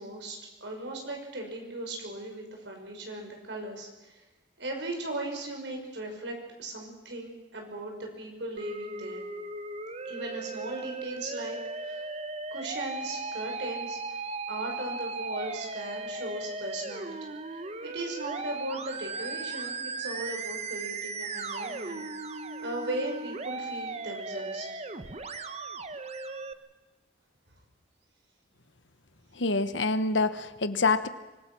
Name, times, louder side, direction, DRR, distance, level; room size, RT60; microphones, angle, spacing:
voice 1, 0.0-4.2 4.6-9.2 10.0-12.0 12.5-14.0 14.5-22.0 22.6-24.7, right 1 dB, 65° right, 2 dB, 6.0 m, -38 dB
Musical instrument, 8.6-26.5, right 3 dB, 35° right, 1.0 m, -37 dB
voice 2, 29.4-31.1, left 3 dB, 75° left, 12 dB, 1.2 m, -26 dB
25.0 x 20.5 x 6.3 m, 1.1 s
head